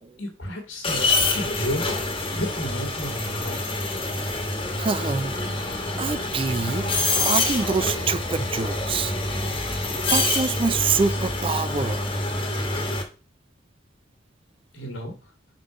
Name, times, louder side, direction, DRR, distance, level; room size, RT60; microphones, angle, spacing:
voice 1, 0.2-2.0 2.3-3.8 14.7-15.2, equal, 80° left, 1.7 m, -32 dB
sound 1, 0.8-13.0, left 2 dB, 30° left, 1.2 m, -26 dB
voice 2, 4.1-4.5 4.8-5.3 6.0-9.1 9.9-12.0, right 4 dB, 30° right, 0.4 m, -26 dB
5.2 x 3.8 x 4.9 m
head